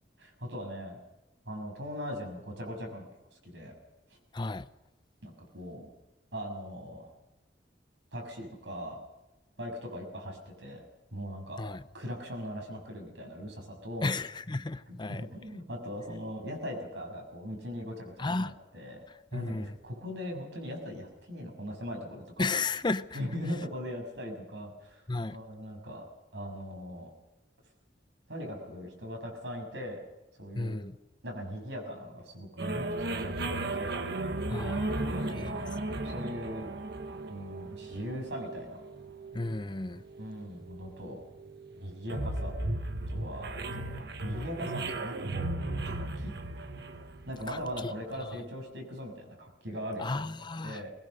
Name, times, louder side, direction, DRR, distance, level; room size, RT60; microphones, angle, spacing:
voice 1, 0.2-1.0 1.4-3.1 3.4-3.7 5.2-5.9 6.3-7.1 8.1-9.0 9.6-10.8 11.1-11.6 11.9-14.1 14.9-19.0 19.3-22.5 23.1-25.0 25.3-26.0 26.3-27.1 28.3-30.0 30.4-30.7 31.2-34.0 35.0-36.7 37.3-38.8 40.2-41.2 41.7-42.5 43.1-45.4 45.8-46.3 47.3-50.9, equal, 85° right, 6.6 m, -40 dB
voice 2, 4.3-4.7 11.6-11.8 14.0-15.3 18.2-18.5 19.3-19.7 22.4-23.2 25.1-25.4 30.6-30.9 34.5-35.5 39.3-40.0 47.5-47.6 50.0-50.8, left 3 dB, 25° left, 0.6 m, -33 dB
sound 1, 32.6-48.0, right 2 dB, 65° right, 1.4 m, -36 dB
21.0 x 20.0 x 6.6 m
head